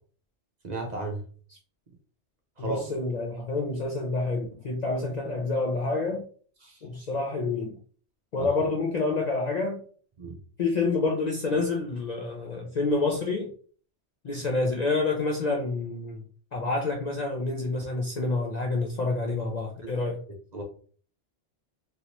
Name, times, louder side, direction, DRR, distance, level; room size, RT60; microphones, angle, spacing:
voice 1, 0.6-1.2 2.6-2.9 6.6-6.8 8.4-8.5 10.2-10.4 19.8-19.9 20.5-20.6, right 2 dB, 45° right, 0.7 m, -34 dB
voice 2, 2.6-6.2 6.8-7.8 8.3-9.8 10.6-13.5 14.2-16.2 16.5-20.2, left 3 dB, 50° left, 0.5 m, -28 dB
3.0 x 2.8 x 2.9 m
omnidirectional pair, 1.2 m